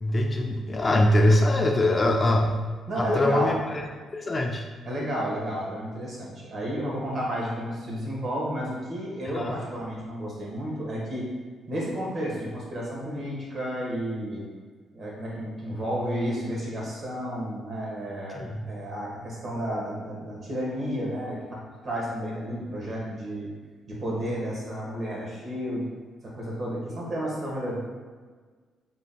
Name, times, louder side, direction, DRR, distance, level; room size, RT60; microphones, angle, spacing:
voice 1, 0.0-2.6 3.0-3.6 4.1-4.6 9.2-9.6 18.3-18.6, left 1 dB, 30° left, 2 dB, 0.4 m, -23 dB
voice 2, 2.9-3.6 4.8-11.2 11.7-14.5 14.9-23.5 23.9-25.9 26.2-27.8, equal, 50° right, -4 dB, 1.3 m, -31 dB
4.0 x 3.5 x 2.2 m, 1.5 s
cardioid pair, 90°, 0 cm